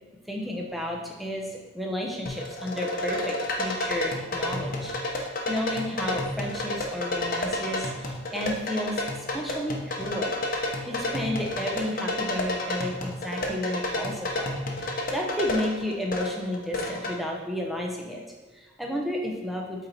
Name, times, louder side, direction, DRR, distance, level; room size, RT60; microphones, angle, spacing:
voice 1, 0.3-1.5 1.7-9.0 9.3-10.3 10.9-14.5 14.8-19.9, left 1 dB, ahead, -1 dB, 0.9 m, -32 dB
sound 1, 2.3-17.1, left 1 dB, 40° left, 0.9 m, -31 dB
8.4 x 4.4 x 4.2 m, 1.3 s
head